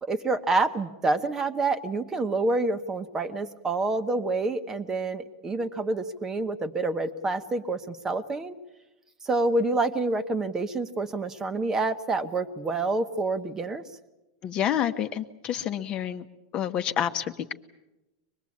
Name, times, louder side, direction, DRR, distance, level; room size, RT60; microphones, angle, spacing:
voice 1, 0.0-8.6 9.2-13.8, right 3 dB, 15° right, 10 dB, 1.1 m, -27 dB
voice 2, 14.4-16.2 16.5-17.5, left 10 dB, 35° left, 8 dB, 1.1 m, -28 dB
24.5 x 20.5 x 8.6 m, 1.0 s
supercardioid pair, 140°, 3 cm